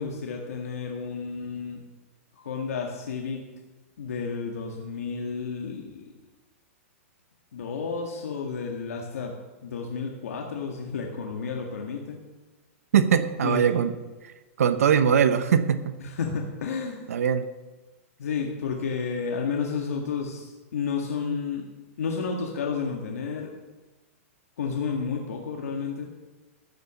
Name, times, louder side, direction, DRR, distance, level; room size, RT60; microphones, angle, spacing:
voice 1, 0.0-1.8 2.4-3.4 4.0-6.1 7.5-9.3 9.6-12.2 13.4-14.0 16.0-17.1 18.2-21.7 22.0-23.5 24.6-26.1, left 5 dB, 85° left, 1 dB, 1.8 m, -31 dB
voice 2, 12.9-13.9 14.6-15.9 17.1-17.5, right 8 dB, 85° right, 11 dB, 1.0 m, -21 dB
13.0 x 6.9 x 7.1 m, 1.2 s
hypercardioid pair, 155°, 8 cm